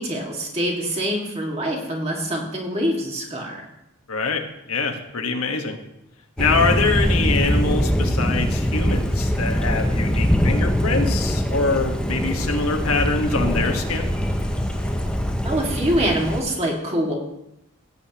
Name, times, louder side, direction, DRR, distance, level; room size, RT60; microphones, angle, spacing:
voice 1, 0.0-3.7 15.4-17.1, right 1 dB, 30° right, 0 dB, 1.9 m, -25 dB
voice 2, 4.1-5.8 6.4-14.1, left 3 dB, 85° left, 3 dB, 1.3 m, -24 dB
Thunder, 6.4-16.4, equal, 5° left, 0.5 m, -22 dB
sound 1, 8.8-15.3, right 1 dB, 80° right, 3.9 m, -42 dB
16.5 x 8.6 x 2.9 m, 0.84 s
head